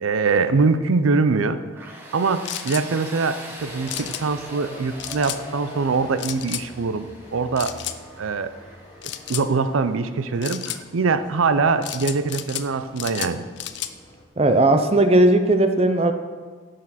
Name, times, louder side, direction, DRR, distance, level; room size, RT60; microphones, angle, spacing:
voice 1, 0.0-7.1 7.3-7.7 8.2-8.5 9.0-13.5, right 4 dB, 85° right, 11 dB, 0.5 m, -23 dB
Tools, 1.8-10.5, right 1 dB, 10° right, 1.0 m, -43 dB
sound 1, 2.4-2.8 3.9-4.2 5.0-5.4 6.2-6.6 7.6-8.0 9.0-9.5 10.4-10.8 11.8-12.7 13.0-13.9, left 12 dB, 55° left, 0.4 m, -32 dB
sound 2, 3.6-14.2, left 1 dB, 20° left, 1.1 m, -44 dB
voice 2, 14.4-16.1, right 1 dB, 30° right, 7 dB, 0.5 m, -17 dB
11.0 x 6.4 x 4.2 m, 1.5 s
head